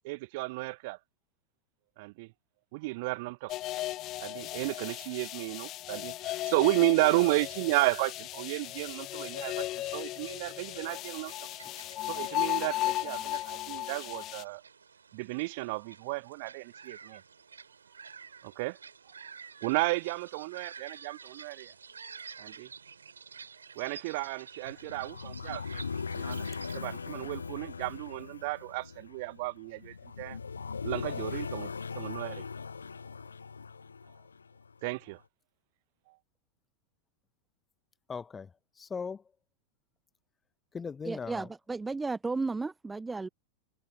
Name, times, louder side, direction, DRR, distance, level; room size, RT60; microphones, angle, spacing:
voice 1, 0.0-1.0 2.0-2.3 2.7-3.5 4.2-11.3 12.1-14.6 15.1-17.2 18.4-18.8 19.6-21.7 22.4-22.7 23.7-25.8 26.1-26.5 26.7-30.4 30.8-32.4 34.8-35.2, right 24 dB, 50° right, 1.3 m, -33 dB
sound 1, 3.5-14.4, left 15 dB, 35° left, 0.5 m, -36 dB
sound 2, 10.6-26.8, right 6 dB, 75° right, 7.0 m, -50 dB
sound 3, 24.7-34.7, left 5 dB, 75° left, 1.5 m, -39 dB
voice 2, 38.1-39.2 40.7-41.5, left 5 dB, 15° left, 1.1 m, -39 dB
voice 3, 41.1-43.3, right 3 dB, 10° right, 0.7 m, -34 dB
figure-of-eight pair, 90°, 0 cm